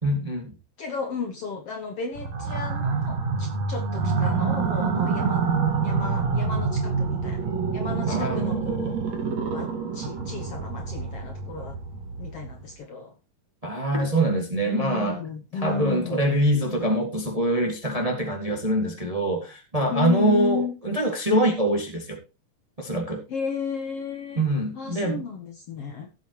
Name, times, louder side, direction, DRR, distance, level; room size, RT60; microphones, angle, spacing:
voice 1, 0.0-0.5 8.1-8.5 13.6-15.2 15.6-22.2 22.8-23.2 24.3-25.2, right 1 dB, 15° right, 2 dB, 1.4 m, -24 dB
voice 2, 0.8-5.5 5.8-9.0 9.5-11.8 12.2-13.1 14.6-16.2 19.9-20.8 23.3-24.4 24.7-26.1, left 5 dB, 60° left, 4 dB, 1.7 m, -33 dB
sound 1, 2.2-12.7, right 5 dB, 60° right, 2.8 m, -27 dB
17.0 x 7.9 x 3.0 m, 0.29 s
omnidirectional pair, 3.8 m